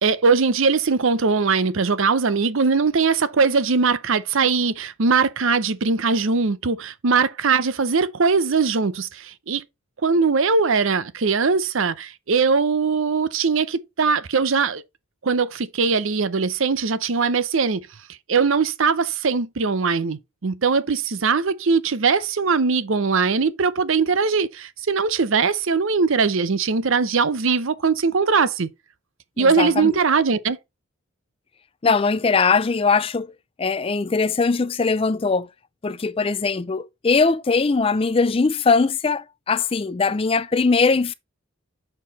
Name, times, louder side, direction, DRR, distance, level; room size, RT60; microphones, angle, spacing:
voice 1, 0.0-9.6 10.0-14.8 15.2-17.8 18.3-28.7 29.4-30.6, right 4 dB, 60° right, 0.6 m, -21 dB
voice 2, 29.4-30.0 31.8-33.3 33.6-35.5 35.8-41.1, left 4 dB, 25° left, 0.3 m, -21 dB
7.5 x 4.5 x 4.1 m
head